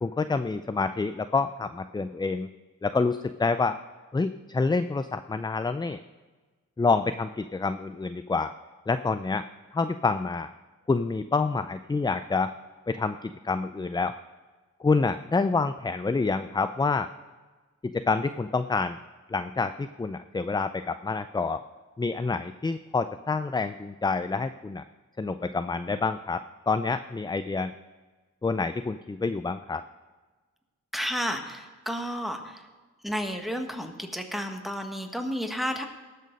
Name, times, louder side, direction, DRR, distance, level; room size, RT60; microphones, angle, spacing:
voice 1, 0.0-2.5 2.8-3.8 4.1-6.0 6.8-8.5 8.9-9.5 9.7-10.5 10.9-12.5 12.9-14.2 14.8-17.1 17.8-19.0 19.3-21.6 22.0-24.8 25.2-27.7 28.4-29.8, left 4 dB, 15° left, 11 dB, 0.3 m, -27 dB
voice 2, 30.9-32.7 33.0-35.8, equal, ahead, 5 dB, 1.3 m, -32 dB
18.5 x 6.6 x 5.3 m, 1.3 s
wide cardioid pair, 90°, 31 cm